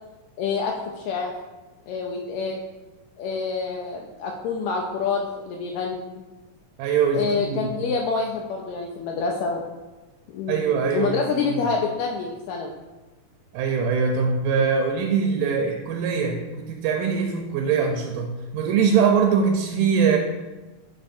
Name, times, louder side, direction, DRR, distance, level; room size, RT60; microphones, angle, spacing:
voice 1, 0.4-1.3 1.9-2.6 3.2-6.0 7.1-9.6 10.3-10.6 10.9-12.7, left 5 dB, 85° left, 0 dB, 1.6 m, -27 dB
voice 2, 6.8-7.7 10.5-11.2 11.5-11.6 13.5-20.2, right 6 dB, 85° right, 2 dB, 2.1 m, -22 dB
7.4 x 4.9 x 2.5 m, 1.2 s
omnidirectional pair, 3.7 m